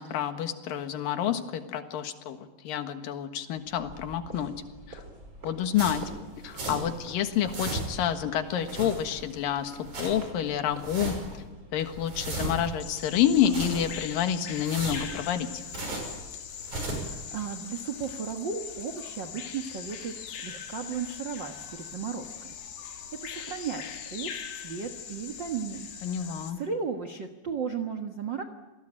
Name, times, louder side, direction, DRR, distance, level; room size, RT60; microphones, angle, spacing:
voice 1, 0.0-4.5 4.9-5.0 5.4-6.0 6.4-11.1 11.7-15.6 26.0-26.6, left 9 dB, 65° left, 8 dB, 3.1 m, -28 dB
sound 1, 3.6-14.5, right 1 dB, 20° right, 4.1 m, -48 dB
sound 2, 5.8-7.0 7.3-8.1 8.5-9.3 9.7-10.3 10.7-11.4 11.8-12.8 13.3-14.1 14.5-16.2 16.5-17.2, right 2 dB, 50° right, 7.4 m, -36 dB
Bird vocalization bird call bird song, 12.8-26.5, left 8 dB, 90° left, 4.1 m, -41 dB
voice 2, 16.9-28.4, right 6 dB, 80° right, 5 dB, 1.0 m, -36 dB
28.5 x 19.5 x 8.9 m, 1.2 s
omnidirectional pair, 4.4 m